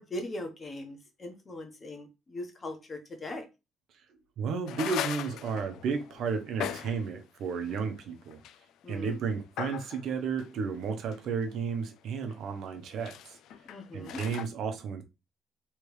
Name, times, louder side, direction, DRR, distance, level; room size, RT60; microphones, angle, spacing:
voice 1, 0.0-3.5 7.7-7.8 8.8-9.2 13.7-14.2, left 1 dB, 30° left, 1.1 m, -40 dB
voice 2, 4.4-8.4 8.9-13.4 13.9-15.0, right 5 dB, 70° right, 0.9 m, -33 dB
sound 1, 4.7-7.1 7.6-7.7 8.3-8.6 8.9-9.1 9.6-10.0 10.4-11.8 12.3-12.4 12.6-14.5, left 10 dB, 80° left, 0.3 m, -39 dB
3.3 x 3.3 x 4.8 m
cardioid pair, 125°, 0 cm